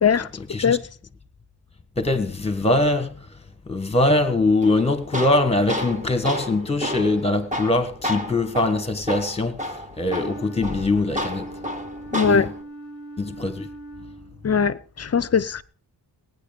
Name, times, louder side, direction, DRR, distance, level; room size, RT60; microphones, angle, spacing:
voice 1, 2.0-3.3 3.7-11.5 12.2-12.5 13.2-13.7, left 2 dB, 15° left, 1.5 m, -22 dB
Tools, 4.6-12.6, left 1 dB, 20° right, 1.5 m, -31 dB
Wind instrument woodwind instrument, 10.0-14.5, right 2 dB, 55° right, 4.1 m, -39 dB
voice 2, 12.1-12.5 14.4-15.6, left 6 dB, 40° left, 0.6 m, -20 dB
19.0 x 9.7 x 5.1 m
wide cardioid pair, 155°, 40 cm